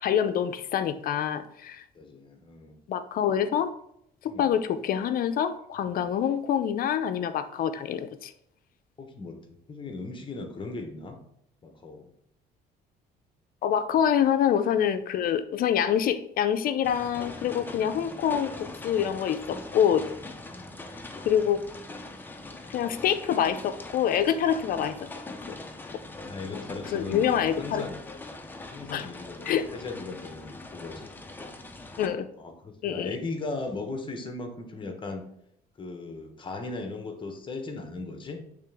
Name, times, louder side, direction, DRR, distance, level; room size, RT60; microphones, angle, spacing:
voice 1, 0.0-1.8 2.9-3.7 4.2-8.3 13.6-20.1 21.3-21.6 22.7-25.0 26.5-26.6 26.9-27.8 28.9-29.1 29.5-29.7 32.0-32.3 32.8-33.1, left 9 dB, 60° left, 11 dB, 0.5 m, -26 dB
voice 2, 1.9-2.8 4.2-4.5 5.9-6.1 9.0-11.2 11.6-12.1 13.9-14.0 20.5-20.8 26.0-28.0 28.7-31.7 32.4-35.2 35.8-38.4, left 3 dB, 30° left, 5 dB, 1.0 m, -38 dB
sound 1, 16.8-32.1, left 2 dB, 10° left, 0.6 m, -42 dB
8.6 x 3.3 x 3.5 m, 0.74 s
cardioid pair, 110°, 17 cm